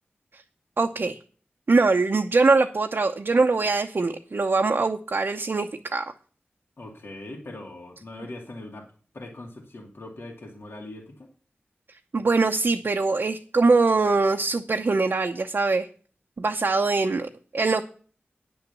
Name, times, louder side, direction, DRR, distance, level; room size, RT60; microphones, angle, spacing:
voice 1, 0.8-1.2 1.7-6.1 12.1-15.9 16.4-17.9, right 3 dB, 60° right, 3 dB, 0.8 m, -22 dB
voice 2, 6.8-8.9 9.1-11.3, left 2 dB, 65° left, 0 dB, 2.3 m, -41 dB
9.6 x 7.0 x 6.8 m, 0.41 s
wide cardioid pair, 55°, 4 cm